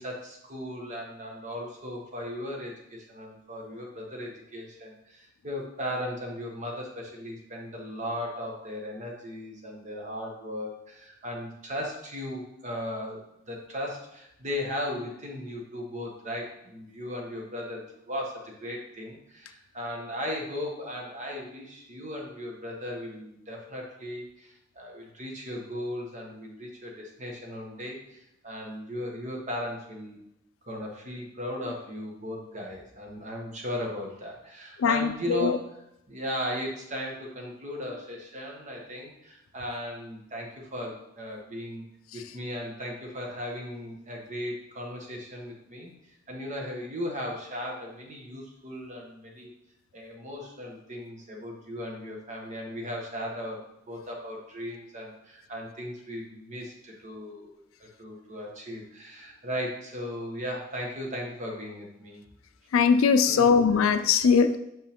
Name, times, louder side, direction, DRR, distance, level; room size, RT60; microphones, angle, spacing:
voice 1, 0.0-30.2 30.7-35.6 36.1-41.8 42.1-45.9 46.3-49.5 49.9-53.6 53.9-62.2 63.3-63.6, equal, 40° right, 0 dB, 1.3 m, -37 dB
voice 2, 34.8-35.6 62.7-64.6, left 6 dB, 85° left, 9 dB, 0.4 m, -21 dB
5.6 x 5.3 x 3.6 m, 0.82 s
head